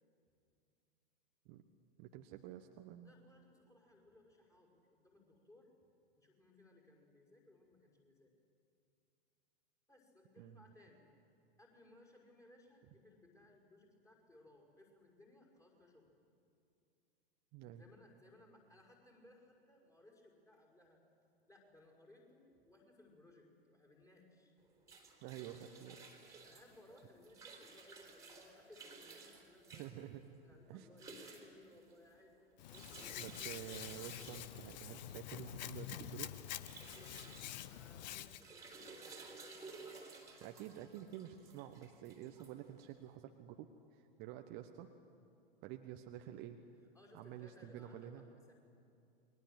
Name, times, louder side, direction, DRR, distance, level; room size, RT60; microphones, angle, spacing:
voice 1, 2.0-3.1 10.4-10.6 17.5-17.8 25.2-26.0 29.7-30.2 30.7-30.9 33.2-36.3 40.4-44.9 45.6-46.6 47.1-48.2, right 11 dB, 35° right, 6 dB, 1.2 m, -49 dB
voice 2, 3.0-5.7 6.2-8.3 9.9-11.1 11.6-16.1 17.7-21.0 21.5-24.5 26.4-29.9 30.4-33.3 37.7-40.5 46.9-48.5, left 1 dB, 10° left, 1 dB, 5.7 m, -63 dB
sound 1, 24.6-43.1, right 4 dB, 10° right, 3.7 m, -56 dB
Hands, 32.6-38.4, left 12 dB, 45° left, 1.0 m, -47 dB
29.0 x 22.5 x 8.1 m, 2.6 s
figure-of-eight pair, 100°, 30 cm